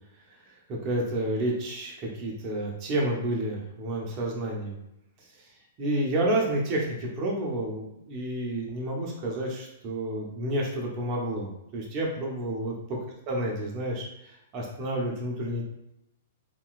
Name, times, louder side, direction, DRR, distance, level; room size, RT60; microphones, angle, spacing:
voice 1, 0.7-4.8 5.8-12.7 13.3-15.6, right 1 dB, 35° right, -1 dB, 0.9 m, -30 dB
3.0 x 2.9 x 2.4 m, 0.86 s
hypercardioid pair, 135°, 0 cm